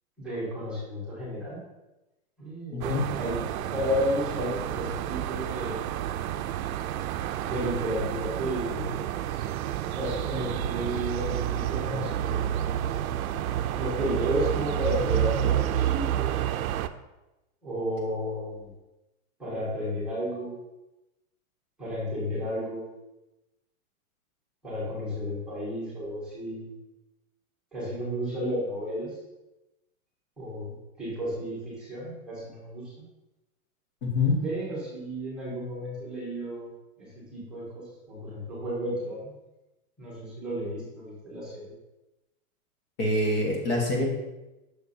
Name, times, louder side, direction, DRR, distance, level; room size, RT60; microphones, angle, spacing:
voice 1, 0.2-1.6 2.4-5.8 7.4-8.9 9.3-9.4 9.8-12.8 13.7-16.4 17.6-18.7 19.4-20.5 21.8-22.9 24.6-26.7 27.7-29.1 30.4-32.8 34.4-36.7 37.0-39.3 40.0-41.7, equal, ahead, -11 dB, 1.3 m, -32 dB
voice 2, 2.7-3.1 34.0-34.4 43.0-44.0, left 2 dB, 40° left, -1 dB, 1.4 m, -25 dB
sound 1, 2.8-16.9, right 12 dB, 75° right, 0.5 m, -30 dB
6.7 x 6.6 x 2.7 m, 1.0 s
supercardioid pair, 175°, 42 cm